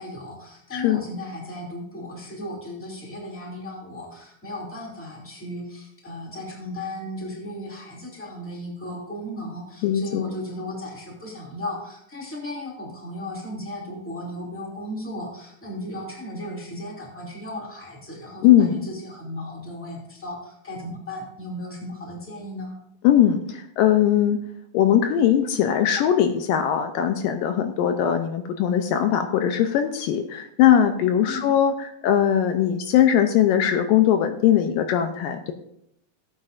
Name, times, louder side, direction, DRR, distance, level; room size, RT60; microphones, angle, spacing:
voice 1, 0.0-22.8 31.2-31.5, left 1 dB, 5° left, -2 dB, 1.9 m, -35 dB
voice 2, 0.7-1.0 9.8-10.3 18.4-18.8 23.0-24.4 24.7-35.5, left 10 dB, 80° left, 7 dB, 2.2 m, -20 dB
16.5 x 8.4 x 2.6 m, 0.74 s
omnidirectional pair, 4.2 m